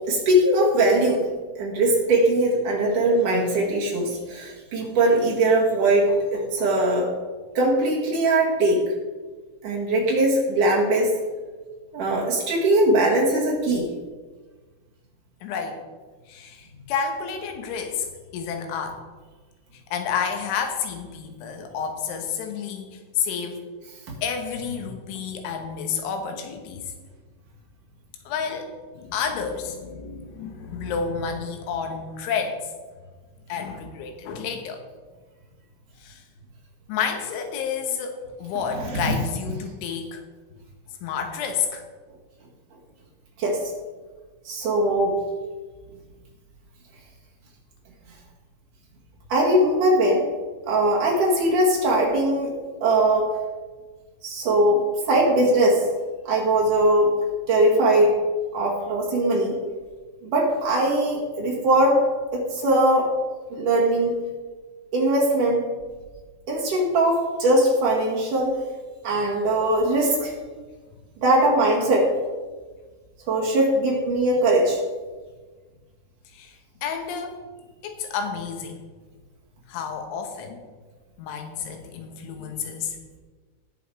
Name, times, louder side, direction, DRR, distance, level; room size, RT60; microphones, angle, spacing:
voice 1, 0.1-1.3 1.6-7.1 7.5-8.9 9.6-11.2 11.9-13.9 24.1-24.2 38.8-39.2 43.4-43.6 44.4-45.2 49.3-50.3 50.7-52.5 52.8-53.4 54.2-55.9 56.2-57.1 57.5-58.3 58.5-59.6 60.2-62.0 62.3-63.1 63.5-64.2 64.9-65.7 66.5-68.6 69.0-70.3 71.2-72.1 73.3-74.8, right 1 dB, 50° right, -3 dB, 2.8 m, -21 dB
voice 2, 15.4-15.8 16.3-18.1 18.3-19.0 19.9-23.6 24.2-27.0 28.3-32.6 33.5-34.8 36.0-36.2 36.9-40.2 41.0-41.8 76.3-77.4 77.8-78.8 79.7-80.6 81.2-83.0, left 6 dB, 75° left, 4 dB, 3.8 m, -30 dB
18.5 x 6.3 x 4.8 m, 1.4 s
omnidirectional pair, 5.6 m